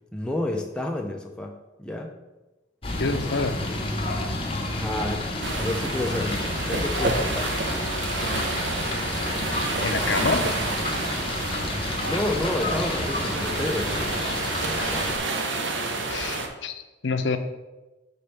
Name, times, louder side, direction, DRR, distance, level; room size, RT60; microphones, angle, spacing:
voice 1, 0.1-2.1 4.8-7.5 12.0-14.1, left 1 dB, 5° left, 1 dB, 0.4 m, -30 dB
sound 1, 2.8-15.2, left 2 dB, 30° left, 0.8 m, -30 dB
voice 2, 3.0-3.6 9.8-10.5 16.1-16.7 17.0-17.4, left 4 dB, 70° left, 8 dB, 0.6 m, -26 dB
sound 2, 5.4-16.5, right 3 dB, 75° right, 0.8 m, -29 dB
5.1 x 4.2 x 5.6 m, 1.1 s
head